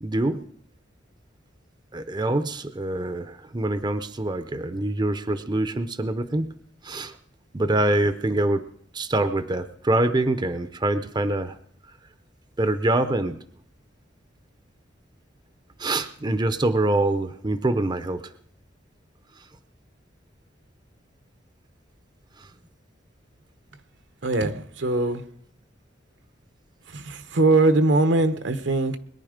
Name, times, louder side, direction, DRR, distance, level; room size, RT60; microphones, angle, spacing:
voice 1, 0.0-0.5 1.9-7.2 7.5-8.6 8.9-11.6 12.6-13.4 15.8-18.2 22.4-22.5, right 2 dB, 25° right, 0.6 m, -25 dB
voice 2, 24.2-25.2 26.9-29.0, right 2 dB, 75° right, 1.0 m, -21 dB
21.5 x 10.0 x 5.1 m
head